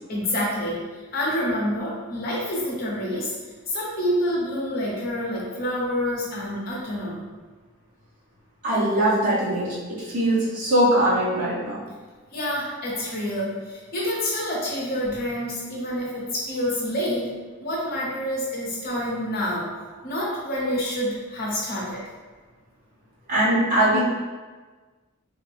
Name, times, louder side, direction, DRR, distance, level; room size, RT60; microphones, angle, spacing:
voice 1, 0.1-0.8 1.1-3.3 3.7-7.3 12.3-17.3 17.6-19.7 20.0-22.0, equal, 45° left, -6 dB, 0.8 m, -27 dB
voice 2, 8.6-11.8 23.3-24.0, right 1 dB, 40° right, -10 dB, 1.2 m, -21 dB
3.4 x 2.1 x 3.3 m, 1.3 s
head